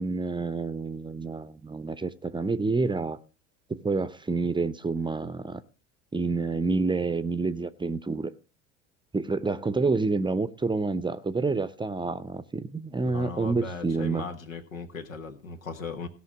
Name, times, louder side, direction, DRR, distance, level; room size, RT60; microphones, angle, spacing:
voice 1, 0.0-3.2 3.7-5.6 6.1-8.3 9.1-14.2, right 3 dB, 10° right, 0.7 m, -28 dB
voice 2, 13.0-16.1, left 4 dB, 85° left, 1.5 m, -37 dB
17.0 x 5.7 x 6.1 m
hypercardioid pair, 70°, 39 cm